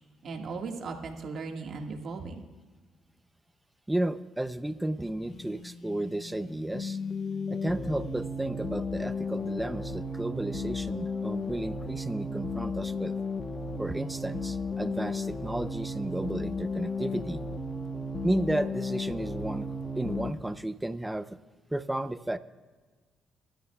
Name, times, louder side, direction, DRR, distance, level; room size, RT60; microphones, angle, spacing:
voice 1, 0.2-2.4, right 4 dB, 60° right, 2 dB, 1.8 m, -37 dB
voice 2, 3.9-7.1 7.5-13.1 13.8-17.4 18.2-19.7 20.0-21.3 21.7-22.4, right 1 dB, 10° right, 12 dB, 0.6 m, -33 dB
Telephone, 5.2-8.4, left 3 dB, 60° left, 1.0 m, -47 dB
sound 1, 6.7-20.3, left 3 dB, 30° left, 1.1 m, -34 dB
23.5 x 12.5 x 2.4 m, 1.4 s
cardioid pair, 90°, 0 cm